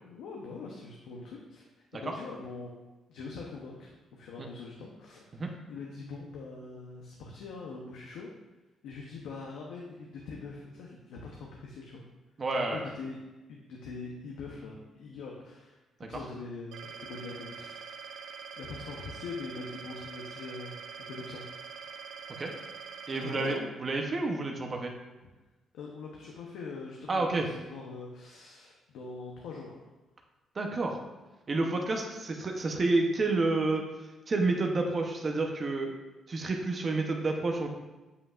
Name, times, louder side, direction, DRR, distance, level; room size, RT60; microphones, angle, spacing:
voice 1, 0.0-2.7 3.1-5.4 5.7-8.3 8.8-12.0 12.5-13.2 13.5-18.2 18.6-20.8 21.1-21.4 22.6-22.7 23.1-23.7 25.2-25.3 25.7-29.8, left 4 dB, 85° left, -2 dB, 0.8 m, -43 dB
voice 2, 12.4-12.8 16.0-16.1 22.4-22.5 23.1-24.9 27.1-27.5 30.5-31.0 31.5-33.8 34.3-36.0 36.3-37.7, right 3 dB, 40° right, 2 dB, 0.8 m, -29 dB
sound 1, 16.7-23.6, right 6 dB, 80° right, 0.6 m, -44 dB
8.2 x 5.3 x 2.5 m, 1.1 s
cardioid pair, 90°, 0 cm